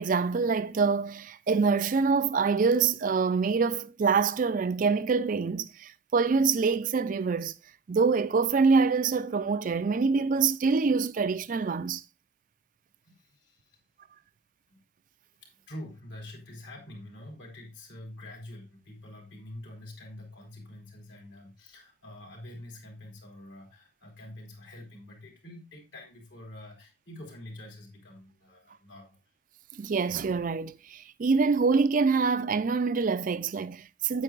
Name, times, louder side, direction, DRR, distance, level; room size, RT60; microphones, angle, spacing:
voice 1, 0.0-7.5 7.9-12.0 29.8-34.2, right 5 dB, 45° right, 0.4 m, -25 dB
voice 2, 13.0-13.8 14.7-14.8 15.4-29.2, left 1 dB, 70° left, 3.5 m, -46 dB
9.1 x 8.5 x 2.4 m
head